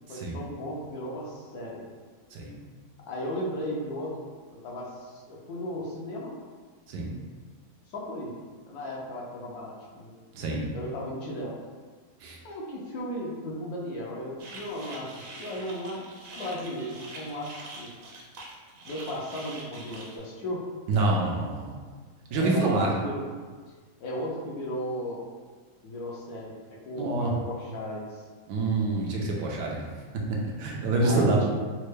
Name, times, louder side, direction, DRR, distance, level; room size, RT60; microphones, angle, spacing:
voice 1, 0.1-1.8 3.1-4.1 4.5-6.3 7.9-8.3 8.7-10.1 10.7-11.5 12.4-16.1 16.4-17.9 18.8-20.6 22.3-23.2 24.0-25.2 25.8-26.5 26.8-28.2 31.0-31.5, equal, 70° left, -3 dB, 1.1 m, -35 dB
voice 2, 10.3-10.7 12.2-12.4 20.9-21.7 22.3-22.9 27.0-27.3 28.5-29.8 30.6-31.5, right 2 dB, 85° right, -2 dB, 1.3 m, -26 dB
sound 1, 14.4-20.2, right 2 dB, 65° right, 1.0 m, -44 dB
4.3 x 2.1 x 3.2 m, 1.5 s
omnidirectional pair, 1.8 m